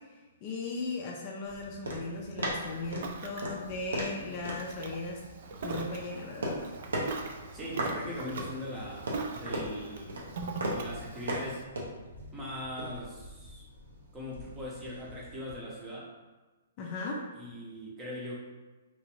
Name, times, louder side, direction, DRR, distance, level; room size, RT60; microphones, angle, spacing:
voice 1, 0.4-5.2 5.6-6.7 16.8-17.2, left 3 dB, 30° left, -1 dB, 0.4 m, -37 dB
sound 1, 1.4-15.6, right 1 dB, 90° right, 0.8 m, -39 dB
Ocean, 2.6-11.6, right 4 dB, 50° right, 0.3 m, -43 dB
voice 2, 7.5-10.2 10.7-11.6 12.3-13.7 14.1-16.1 17.3-18.4, left 1 dB, 15° right, -5 dB, 0.7 m, -40 dB
2.9 x 2.5 x 3.1 m, 1.2 s
hypercardioid pair, 160°, 0 cm